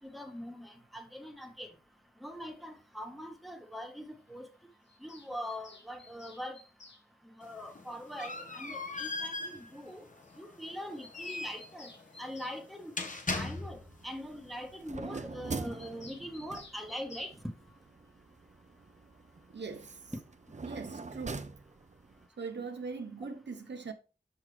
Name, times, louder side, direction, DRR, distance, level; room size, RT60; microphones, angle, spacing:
voice 1, 0.1-1.7 2.2-4.5 5.0-6.6 7.4-10.0 10.4-11.9 12.2-12.9 13.3-17.3, equal, ahead, 1.3 m, -42 dB
Bird vocalization bird call bird song, 4.9-7.0 8.5-8.6 8.8-8.9 9.1-9.2 9.5-9.6 9.9-10.0 10.2-10.4 10.6-12.6 15.8-17.4, left 3 dB, 85° left, 1.3 m, -54 dB
sound 1, 7.4-14.0, left 3 dB, 45° left, 1.2 m, -40 dB
sound 2, 13.4-22.3, right 3 dB, 40° right, 0.6 m, -45 dB
voice 2, 19.5-20.1 20.6-21.5 22.4-23.9, right 4 dB, 85° right, 0.9 m, -41 dB
6.3 x 5.7 x 3.2 m
wide cardioid pair, 65°, 18 cm